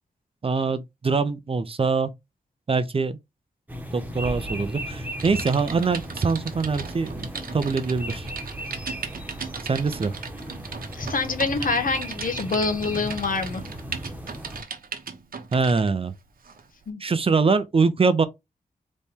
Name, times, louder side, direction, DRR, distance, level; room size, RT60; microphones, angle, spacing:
voice 1, 0.4-2.1 2.7-3.2 3.9-8.3 9.6-10.1 15.5-16.1 17.0-18.3, right 4 dB, 40° right, 0.6 m, -23 dB
sound 1, 3.7-14.6, equal, 10° right, 1.1 m, -36 dB
Typing, 5.2-15.9 16.4-16.6, right 5 dB, 90° right, 0.9 m, -38 dB
voice 2, 10.9-13.6 16.9-17.0, left 4 dB, 75° left, 1.2 m, -26 dB
4.2 x 3.1 x 3.6 m
wide cardioid pair, 130°, 14 cm